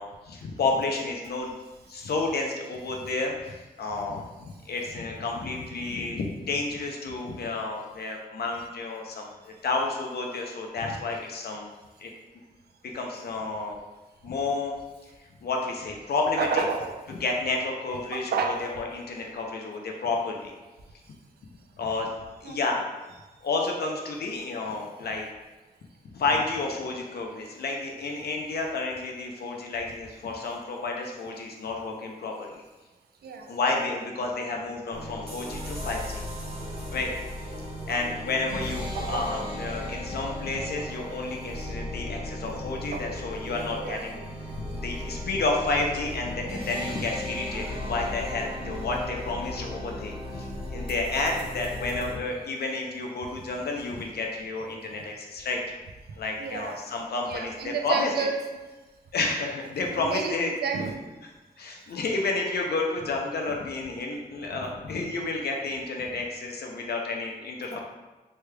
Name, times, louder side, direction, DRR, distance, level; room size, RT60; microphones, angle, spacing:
voice 1, 0.0-1.5 1.9-4.2 4.7-9.3 9.6-11.7 12.0-12.1 12.8-13.8 14.2-14.7 15.4-16.6 17.1-20.5 21.8-22.1 22.4-22.8 23.4-25.3 26.0-32.6 33.5-36.2 36.9-37.1 37.9-44.2 44.7-55.6 56.2-58.1 59.1-60.5 61.6-67.8, left 3 dB, 85° left, 1 dB, 0.5 m, -30 dB
voice 2, 16.4-16.9 18.1-18.6 22.4-22.6 33.2-33.5 37.9-38.0 38.9-39.3 42.4-42.6 42.9-43.0 43.7-44.0 56.4-56.8 57.3-58.4 59.8-61.0, right 5 dB, 90° right, 4 dB, 0.4 m, -30 dB
sound 1, 34.9-52.1, left 1 dB, 35° right, 0.9 m, -36 dB
3.2 x 3.2 x 2.2 m, 1.2 s
wide cardioid pair, 85°, 16 cm